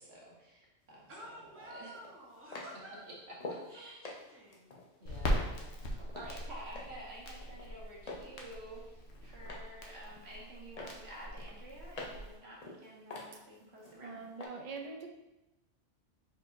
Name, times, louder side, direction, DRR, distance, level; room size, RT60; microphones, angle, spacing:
voice 1, 0.0-1.9 3.7-4.0 5.0-14.2, right 1 dB, 60° right, -4 dB, 1.4 m, -51 dB
sound 1, 0.9-1.0 1.9-3.7 4.0-6.3 6.7-7.1 7.4-8.3 8.7-9.7 10.1-10.5 10.8-12.3 12.6-14.0 14.4-14.5, left 2 dB, 40° left, 0.6 m, -46 dB
voice 2, 1.1-3.1 3.5-4.7, right 1 dB, 10° right, -4 dB, 0.8 m, -51 dB
Crackle, 5.1-12.4, equal, 65° left, 1.0 m, -40 dB
voice 3, 14.0-15.1, right 4 dB, 80° right, 2 dB, 0.3 m, -43 dB
4.6 x 4.4 x 2.5 m, 0.95 s
omnidirectional pair, 1.3 m